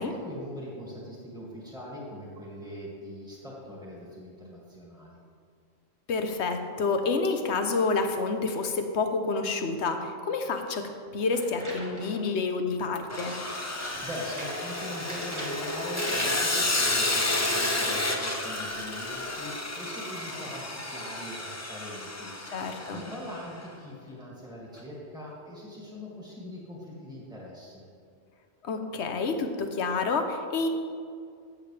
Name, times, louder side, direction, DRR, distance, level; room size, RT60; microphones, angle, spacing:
voice 1, 0.0-5.2 13.6-27.8, equal, 5° right, -5 dB, 2.3 m, -42 dB
voice 2, 6.1-13.3 22.5-23.0 28.6-30.7, left 4 dB, 65° left, 6 dB, 1.1 m, -29 dB
sound 1, 11.3-12.3 13.3-16.6, right 1 dB, 25° right, 2.0 m, -41 dB
Sawing, 13.1-23.4, left 2 dB, 15° left, 0.6 m, -31 dB
13.5 x 8.5 x 3.3 m, 2.2 s
omnidirectional pair, 1.3 m